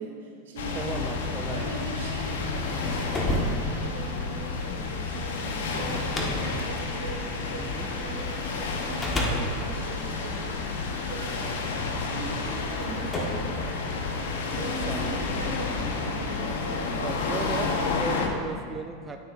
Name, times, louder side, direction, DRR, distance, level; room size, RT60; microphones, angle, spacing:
voice 1, 0.0-0.9 1.5-10.6 11.1-11.4 12.0-14.2 14.6-17.1, right 3 dB, 75° right, -1 dB, 1.7 m, -40 dB
sound 1, 0.6-18.3, left 4 dB, 75° left, 0.8 m, -30 dB
voice 2, 0.7-1.7 5.7-6.4 7.6-7.9 11.8-12.0 14.6-15.7 17.0-19.2, right 4 dB, 20° right, 4 dB, 0.4 m, -37 dB
sound 2, 2.7-8.1 8.7-11.1 12.0-12.1 12.7-14.4, left 1 dB, 20° left, 1.3 m, -33 dB
8.9 x 8.6 x 2.5 m, 2.2 s
hypercardioid pair, 100°, 0 cm